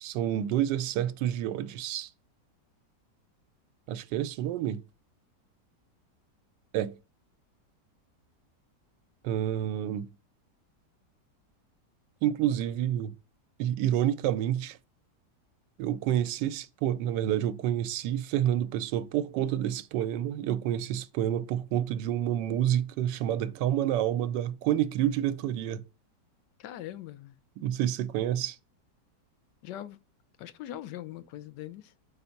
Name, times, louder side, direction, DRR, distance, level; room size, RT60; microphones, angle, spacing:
voice 1, 0.0-2.1 3.9-4.8 6.7-6.9 9.2-10.1 12.2-13.1 13.6-14.8 15.8-25.8 27.6-28.6, right 11 dB, 85° right, 1.2 m, -28 dB
voice 2, 26.6-27.4 29.6-30.0 30.4-31.9, left 12 dB, 85° left, 1.2 m, -41 dB
5.2 x 4.2 x 5.7 m
omnidirectional pair, 1.8 m